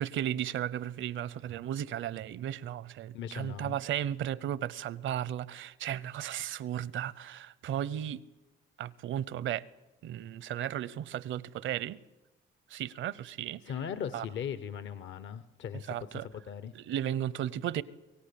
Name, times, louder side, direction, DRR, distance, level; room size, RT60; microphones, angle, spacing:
voice 1, 0.0-8.2 8.8-9.7 10.0-12.0 12.7-13.6 14.1-14.2 15.9-16.3 16.7-17.8, right 11 dB, 75° right, 0.8 m, -35 dB
voice 2, 3.1-3.8 13.7-16.7, left 8 dB, 70° left, 0.8 m, -39 dB
23.5 x 17.0 x 8.5 m
cardioid pair, 90°, 20 cm